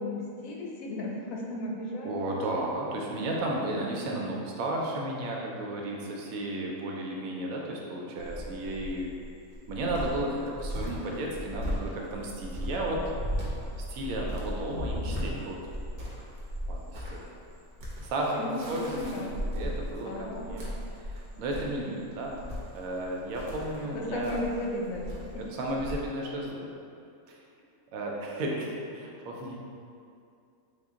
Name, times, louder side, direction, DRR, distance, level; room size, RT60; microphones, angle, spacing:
voice 1, 0.0-2.2 18.4-19.3 20.0-20.6 21.8-21.9 23.9-25.5, left 1 dB, 85° left, -1 dB, 1.0 m, -35 dB
voice 2, 2.0-9.1 9.7-13.0 13.9-15.6 16.7-17.2 18.0-20.6 21.0-22.4 22.7-24.4 25.5-26.7 27.3-27.4 27.9-29.6, right 1 dB, 80° right, -1 dB, 1.0 m, -33 dB
Cricket, 8.2-25.9, equal, 50° right, 0.7 m, -37 dB
3.7 x 2.2 x 3.6 m, 2.5 s
omnidirectional pair, 1.4 m